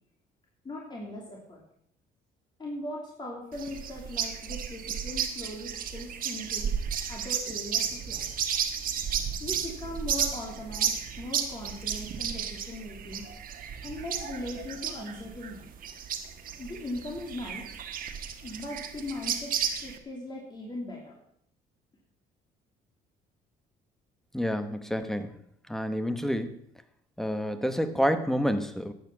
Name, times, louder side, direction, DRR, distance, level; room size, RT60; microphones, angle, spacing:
voice 1, 0.6-1.6 2.6-6.7 7.1-8.3 9.4-13.3 13.8-15.7 16.6-17.7 18.4-21.1, left 1 dB, 25° left, -2 dB, 3.0 m, -39 dB
sound 1, 3.5-20.0, right 8 dB, 55° right, 1.5 m, -33 dB
voice 2, 24.3-25.3 25.7-26.6 27.2-28.9, equal, ahead, 10 dB, 1.1 m, -28 dB
11.5 x 8.6 x 6.1 m, 0.69 s
cardioid pair, 110°, 17 cm